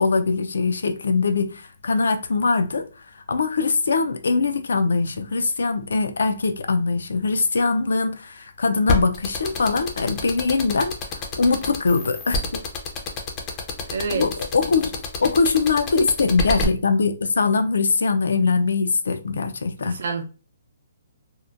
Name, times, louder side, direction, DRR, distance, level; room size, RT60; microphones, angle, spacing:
voice 1, 0.0-2.9 3.3-12.6 14.1-14.9 15.2-20.0, left 4 dB, 90° left, 0.3 m, -22 dB
sound 1, 8.9-16.6, left 3 dB, 20° left, 0.4 m, -27 dB
voice 2, 13.9-14.3 19.8-20.2, right 4 dB, 70° right, 0.5 m, -27 dB
2.7 x 2.1 x 2.4 m
hypercardioid pair, 165°, 0 cm